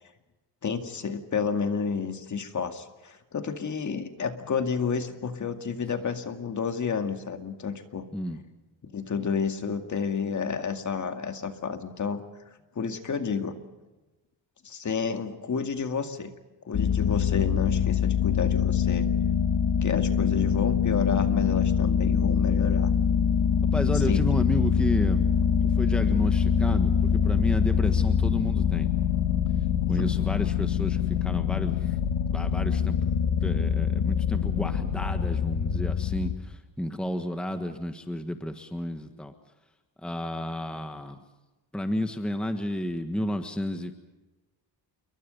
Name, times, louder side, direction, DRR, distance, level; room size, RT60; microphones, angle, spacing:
voice 1, 0.6-8.1 8.8-12.2 12.8-13.6 14.6-16.3 16.6-19.1 19.8-22.9 24.1-24.4 29.9-30.1, left 6 dB, 40° left, 7 dB, 2.2 m, -30 dB
sound 1, 16.7-36.4, left 7 dB, 65° left, 2.6 m, -24 dB
voice 2, 23.7-25.3 25.6-28.9 29.9-32.0 32.3-33.1 33.4-39.3 40.0-41.2 41.7-43.9, left 1 dB, ahead, 7 dB, 1.5 m, -32 dB
29.0 x 23.0 x 5.4 m, 1.1 s
cardioid pair, 140°, 46 cm